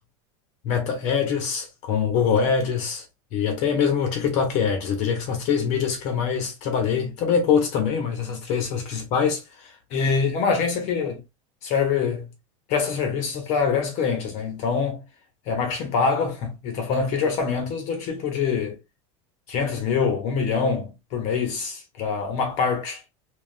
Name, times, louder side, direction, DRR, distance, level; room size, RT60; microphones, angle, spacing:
voice 1, 0.6-3.0 3.3-11.2 11.6-12.3 12.7-15.0 15.5-18.8 19.5-23.0, left 6 dB, 50° left, 1.0 m, -24 dB
3.2 x 2.4 x 2.4 m
supercardioid pair, 150°, 15 cm